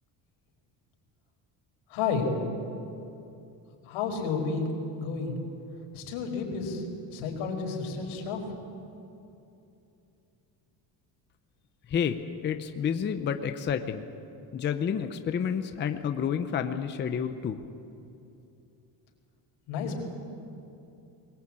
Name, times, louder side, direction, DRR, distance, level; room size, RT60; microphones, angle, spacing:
voice 1, 1.9-2.3 3.9-4.7 5.0-5.4 5.9-6.8 7.1-8.4 19.7-20.0, left 5 dB, 85° left, 1 dB, 4.9 m, -31 dB
voice 2, 12.4-14.0 14.5-17.6, left 7 dB, 25° left, 8 dB, 0.6 m, -29 dB
22.5 x 20.0 x 8.7 m, 2.8 s
cardioid pair, 180°, 47 cm